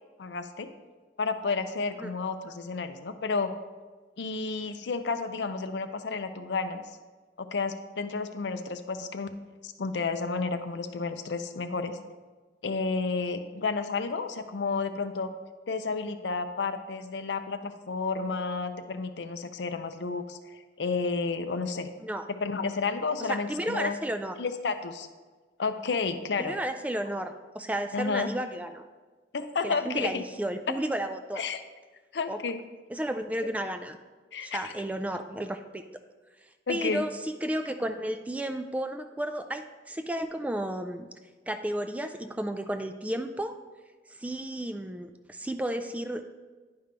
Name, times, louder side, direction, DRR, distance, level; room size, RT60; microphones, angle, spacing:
voice 1, 0.2-0.7 1.2-3.5 4.2-6.8 7.4-9.3 9.6-12.0 12.6-15.3 15.7-21.9 22.3-23.9 24.4-25.1 25.6-26.5 27.9-28.3 29.3-30.2 31.4-31.6 32.1-32.6 34.3-34.7 36.7-37.0, left 4 dB, 75° left, 9 dB, 0.5 m, -31 dB
voice 2, 23.2-24.3 26.4-28.8 29.6-31.5 32.3-32.4 32.9-34.0 34.4-35.8 36.7-41.1 41.5-43.5 44.1-46.2, right 1 dB, 10° right, 8 dB, 0.3 m, -33 dB
10.5 x 5.2 x 3.3 m, 1.3 s
head